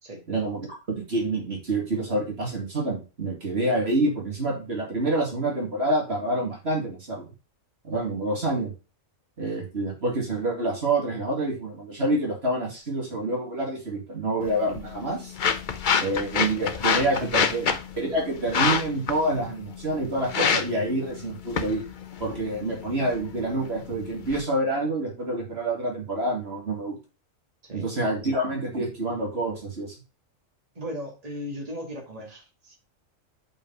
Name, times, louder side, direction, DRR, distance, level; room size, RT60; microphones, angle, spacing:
voice 1, 0.3-7.3 7.8-8.7 9.4-15.3 16.0-17.7 18.0-21.8 22.2-27.0 27.7-30.0, right 1 dB, 50° right, -1 dB, 2.3 m, -27 dB
sound 1, 14.4-24.4, left 6 dB, 45° left, 0.7 m, -28 dB
voice 2, 30.7-32.8, equal, 25° right, 0 dB, 2.3 m, -37 dB
5.8 x 5.3 x 5.4 m, 0.31 s
omnidirectional pair, 1.4 m